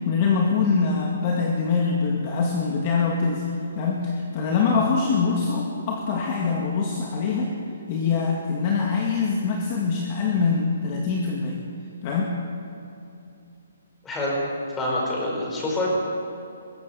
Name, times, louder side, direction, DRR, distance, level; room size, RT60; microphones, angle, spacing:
voice 1, 0.0-3.4 3.7-7.5 7.9-11.6 12.0-12.4, left 5 dB, 30° left, -1 dB, 2.1 m, -24 dB
voice 2, 14.0-14.4 14.7-15.9, left 1 dB, 10° left, -3 dB, 4.7 m, -26 dB
22.0 x 17.5 x 7.0 m, 2.7 s
hypercardioid pair, 170°, 0 cm